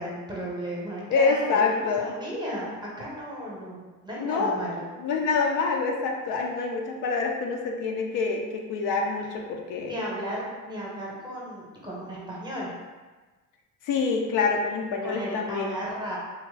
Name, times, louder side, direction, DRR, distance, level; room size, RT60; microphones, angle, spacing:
voice 1, 0.0-4.9 9.8-12.7 15.0-16.2, equal, 15° right, -5 dB, 0.8 m, -34 dB
voice 2, 1.1-2.1 4.2-4.6 5.0-9.9 13.8-15.8, left 4 dB, 75° left, 1 dB, 0.5 m, -26 dB
3.5 x 2.0 x 3.2 m, 1.3 s
cardioid pair, 125°, 32 cm